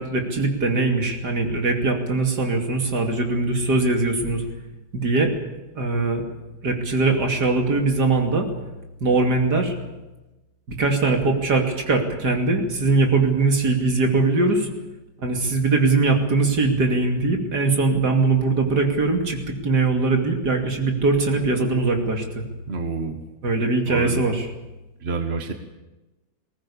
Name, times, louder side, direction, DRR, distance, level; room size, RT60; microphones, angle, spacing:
voice 1, 0.0-4.4 4.9-5.3 5.7-6.2 6.6-8.5 9.0-9.7 10.7-14.7 15.2-22.4 23.4-24.5, right 3 dB, 55° right, 3 dB, 3.2 m, -21 dB
voice 2, 22.7-23.2 23.8-24.2 25.0-25.5, right 4 dB, 35° right, 6 dB, 1.6 m, -28 dB
20.5 x 18.5 x 8.6 m, 1.1 s
omnidirectional pair, 2.1 m